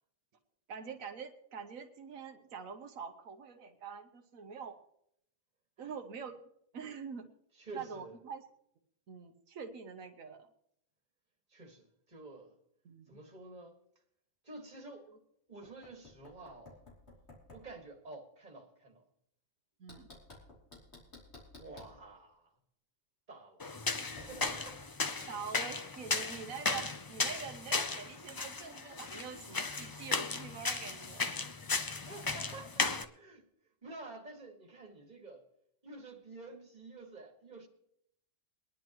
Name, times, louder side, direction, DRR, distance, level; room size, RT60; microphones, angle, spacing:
voice 1, 0.7-4.8 5.8-6.3 6.7-7.2 7.7-8.4 9.1-10.5 12.8-13.2 19.8-20.1 25.3-31.4, right 6 dB, 85° right, 1.3 m, -45 dB
voice 2, 7.5-8.2 11.5-12.6 13.1-13.8 14.4-15.1 15.5-16.8 17.5-19.1 21.6-22.5 23.3-23.8 24.1-24.8 32.0-33.5 33.8-35.4 35.8-37.7, right 2 dB, 35° right, 2.0 m, -50 dB
Knock, 15.6-17.7 19.9-22.0 24.2-24.7, left 2 dB, 55° left, 3.3 m, -55 dB
sound 1, 23.6-33.0, left 3 dB, 35° left, 0.3 m, -36 dB
23.5 x 10.5 x 3.0 m
omnidirectional pair, 1.4 m